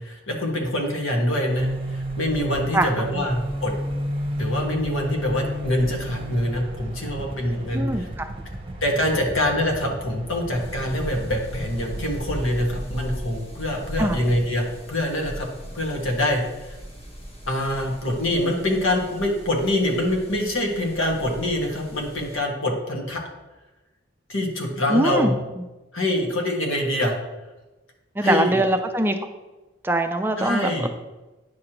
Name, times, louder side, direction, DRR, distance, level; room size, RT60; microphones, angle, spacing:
voice 1, 0.0-3.7 4.4-8.1 8.8-15.5 15.7-16.8 17.5-23.2 24.3-25.3 25.9-27.2 28.2-28.7 30.4-30.9, left 1 dB, 85° left, 0 dB, 1.5 m, -25 dB
sound 1, 1.5-12.8, right 1 dB, 30° right, 0.7 m, -32 dB
voice 2, 2.7-3.2 7.7-8.3 14.0-14.2 24.9-25.3 28.2-29.2 29.8-30.9, right 1 dB, 10° right, 6 dB, 0.3 m, -22 dB
sound 2, 10.5-22.4, equal, 30° left, 1.3 m, -38 dB
9.4 x 6.4 x 3.0 m, 1.1 s
head